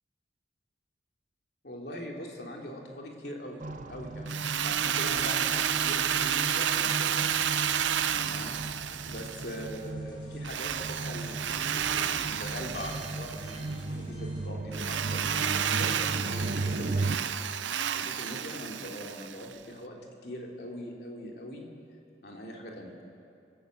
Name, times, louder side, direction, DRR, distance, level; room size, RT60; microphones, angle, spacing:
voice 1, 1.6-7.3 8.2-8.6 9.0-17.1 17.6-20.0 20.2-21.7 22.2-22.9, equal, 55° left, 0 dB, 3.1 m, -42 dB
sound 1, 3.6-17.2, right 2 dB, 45° right, 0.8 m, -37 dB
Drill, 4.3-9.8 10.4-13.7 14.7-19.5, right 9 dB, 80° right, 0.7 m, -31 dB
sound 2, 7.1-14.5, equal, 25° left, 4.3 m, -49 dB
26.0 x 14.0 x 8.0 m, 2.5 s
head